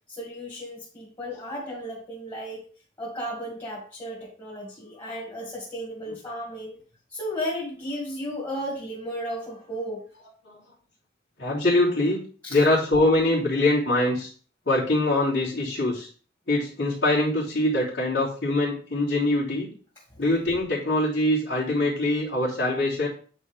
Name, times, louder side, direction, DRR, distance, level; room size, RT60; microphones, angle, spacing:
voice 1, 0.1-2.7 3.0-6.8 7.1-10.0 12.4-12.6, equal, 25° left, -5 dB, 2.3 m, -34 dB
voice 2, 11.4-12.2 12.5-14.3 14.6-16.1 16.5-19.7 20.2-23.1, left 1 dB, 90° left, -11 dB, 3.3 m, -23 dB
9.5 x 4.3 x 3.5 m, 0.42 s
head